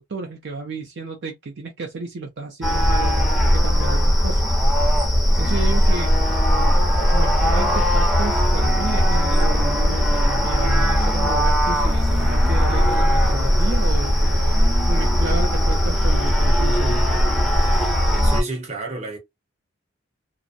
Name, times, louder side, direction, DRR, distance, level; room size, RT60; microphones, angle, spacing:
voice 1, 0.0-4.4 5.4-6.1 7.1-14.5 14.9-17.0, right 3 dB, 55° right, 0.5 m, -32 dB
sound 1, 2.6-18.4, equal, ahead, 0.5 m, -18 dB
voice 2, 18.2-19.2, right 2 dB, 35° right, 0.8 m, -30 dB
2.5 x 2.0 x 2.5 m
head